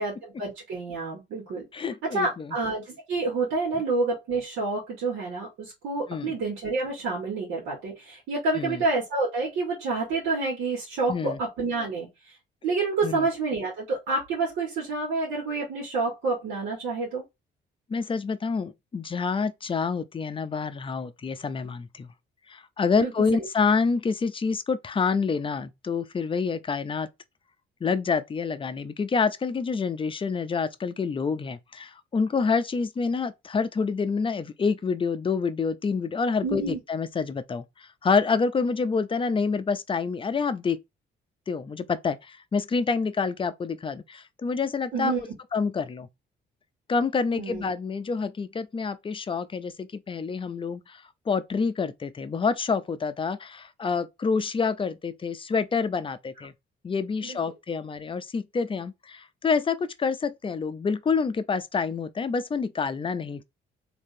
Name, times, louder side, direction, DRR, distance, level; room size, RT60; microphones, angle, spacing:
voice 1, 0.0-1.6 2.0-12.1 12.6-17.2 22.9-23.1 36.4-36.8 44.9-45.2 47.3-47.6 57.2-57.4, right 3 dB, 90° right, 1.6 m, -28 dB
voice 2, 1.7-2.6 6.1-6.3 8.6-8.8 11.1-11.4 13.0-13.3 17.9-22.1 22.5-27.1 27.8-40.8 41.5-45.1 45.5-46.1 46.9-56.5 56.8-63.4, left 5 dB, 25° left, 0.5 m, -27 dB
3.6 x 2.8 x 2.7 m
cardioid pair, 90°, 20 cm